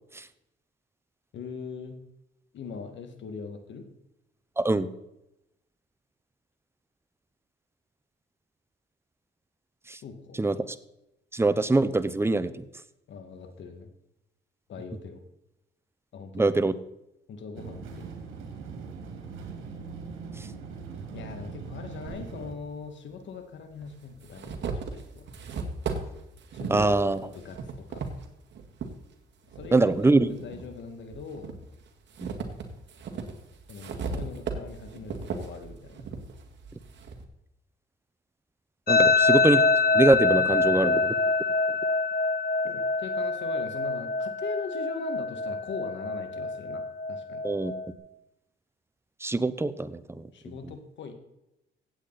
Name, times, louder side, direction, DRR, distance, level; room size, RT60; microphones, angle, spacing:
voice 1, 1.3-2.0 2.5-3.8 10.0-10.4 13.1-13.9 14.7-15.2 16.1-16.5 17.3-18.1 21.1-25.3 26.5-28.0 29.6-31.6 33.7-36.1 39.0-39.1 42.6-46.8 47.1-47.4 50.3-51.1, left 5 dB, 70° left, 7 dB, 2.2 m, -41 dB
voice 2, 4.6-4.9 9.9-10.0 10.4-10.8 11.3-12.5 16.3-16.7 20.4-20.5 26.7-27.3 29.7-30.3 32.2-32.3 38.9-39.6 39.9-41.1 47.4-47.7 49.2-50.3 50.6-50.7, right 2 dB, 10° right, 13 dB, 0.8 m, -23 dB
sound 1, 17.5-22.5, right 5 dB, 90° right, 2.5 m, -40 dB
sound 2, 22.1-22.2 23.2-23.3 23.8-28.9 29.5-30.7 31.1-37.2, right 4 dB, 65° right, 1.9 m, -36 dB
sound 3, 38.9-47.9, left 3 dB, 50° left, 1.5 m, -25 dB
16.0 x 8.4 x 4.2 m, 0.87 s
cardioid pair, 90°, 20 cm